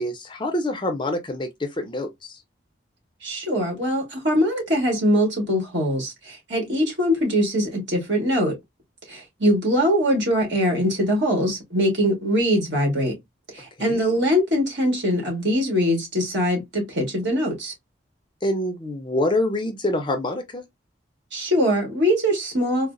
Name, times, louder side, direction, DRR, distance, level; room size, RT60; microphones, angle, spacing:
voice 1, 0.0-2.4 13.8-14.0 18.4-20.6, left 1 dB, 25° left, 0.5 m, -26 dB
voice 2, 3.2-8.5 9.1-13.1 13.5-17.7 21.3-22.9, equal, 65° right, 1.6 m, -22 dB
3.9 x 2.0 x 2.4 m
head